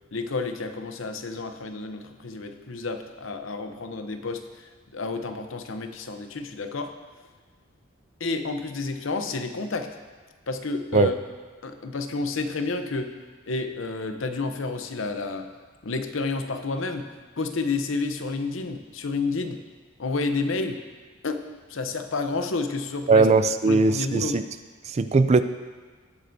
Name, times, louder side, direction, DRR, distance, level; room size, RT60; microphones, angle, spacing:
voice 1, 0.1-6.9 8.2-9.9 10.5-11.1 11.6-13.1 13.5-15.5 15.8-17.1 17.4-19.6 20.0-20.8 21.2-21.4 21.7-23.3 23.6-24.4, left 3 dB, 65° left, 7 dB, 0.8 m, -30 dB
voice 2, 23.1-24.4 24.9-25.4, right 3 dB, 30° right, 11 dB, 0.3 m, -19 dB
19.0 x 7.7 x 2.7 m, 1.4 s
head